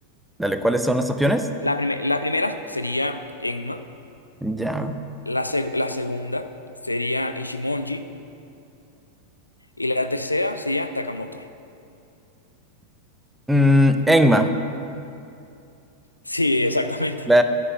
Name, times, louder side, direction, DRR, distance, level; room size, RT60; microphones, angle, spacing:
voice 1, 0.4-1.5 4.4-5.0 13.5-14.5 17.3-17.4, equal, 5° right, 8 dB, 0.6 m, -18 dB
voice 2, 1.6-3.8 5.3-6.5 6.8-8.0 9.8-11.4 16.3-17.4, left 2 dB, 85° left, 9 dB, 0.5 m, -25 dB
10.5 x 6.1 x 8.9 m, 2.6 s
figure-of-eight pair, 90°, 0 cm